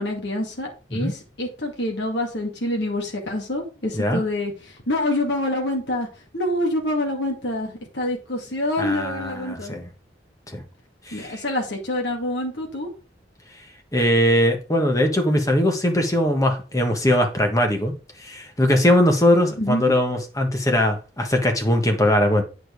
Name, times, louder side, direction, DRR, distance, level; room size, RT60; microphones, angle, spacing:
voice 1, 0.0-6.1 6.3-9.8 11.1-12.9 19.6-19.9, left 1 dB, 75° left, 2.2 m, -26 dB
voice 2, 8.8-9.9 10.5-10.6 11.1-11.4 13.9-17.9 18.2-22.4, left 1 dB, 20° left, 1.4 m, -20 dB
9.0 x 5.2 x 4.6 m
head